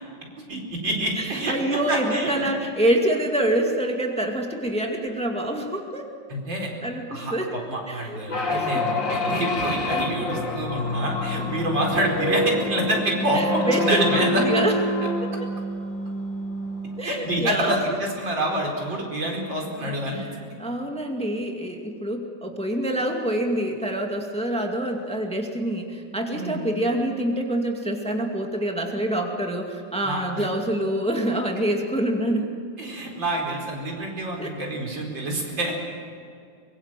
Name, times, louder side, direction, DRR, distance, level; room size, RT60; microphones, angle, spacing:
voice 1, 0.5-1.5 1.9-2.5 6.3-6.7 7.1-14.4 17.0-20.3 26.3-26.6 30.0-30.4 32.8-35.7, right 1 dB, 75° right, 0 dB, 5.4 m, -27 dB
voice 2, 1.2-6.1 6.8-7.5 7.9-8.2 8.5-8.8 13.3-14.7 15.0-15.3 17.0-17.8 20.1-20.3 20.6-32.5 34.4-34.5, right 1 dB, 5° left, 2 dB, 2.2 m, -26 dB
sound 1, 8.3-17.1, left 2 dB, 80° left, 3.3 m, -27 dB
24.0 x 23.0 x 7.7 m, 2.4 s
omnidirectional pair, 2.0 m